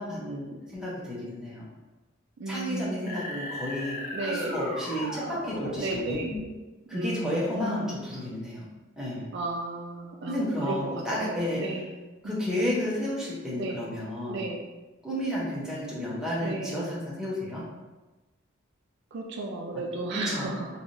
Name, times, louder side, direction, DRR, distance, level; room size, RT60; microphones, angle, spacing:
voice 1, 0.0-1.6 2.5-6.2 6.9-8.7 9.0-9.2 10.3-11.7 12.2-14.4 15.0-17.6 20.1-20.6, left 1 dB, 5° right, -7 dB, 0.7 m, -32 dB
voice 2, 2.4-3.2 4.1-4.5 5.8-6.3 6.9-8.0 9.3-11.9 12.2-12.4 13.5-13.8 14.3-14.6 16.4-16.8 19.1-20.8, right 2 dB, 55° right, 0 dB, 0.4 m, -34 dB
sound 1, 3.1-6.6, left 1 dB, 45° left, 0.7 m, -37 dB
3.2 x 2.6 x 2.5 m, 1.1 s
head